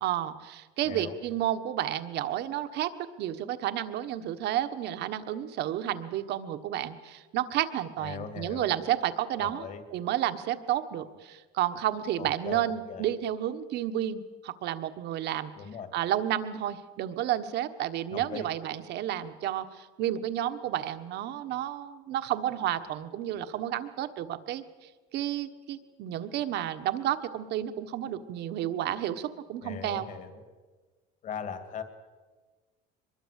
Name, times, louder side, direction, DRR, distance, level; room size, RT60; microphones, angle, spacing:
voice 1, 0.0-2.9 3.2-15.5 15.9-30.1, right 12 dB, 55° right, 10 dB, 1.4 m, -31 dB
voice 2, 8.0-8.7 9.4-9.8 12.2-13.0 15.6-15.9 18.1-18.5 29.6-30.4 31.2-31.8, left 7 dB, 40° left, 9 dB, 2.2 m, -39 dB
24.0 x 21.5 x 8.3 m, 1.3 s
cardioid pair, 170°, 21 cm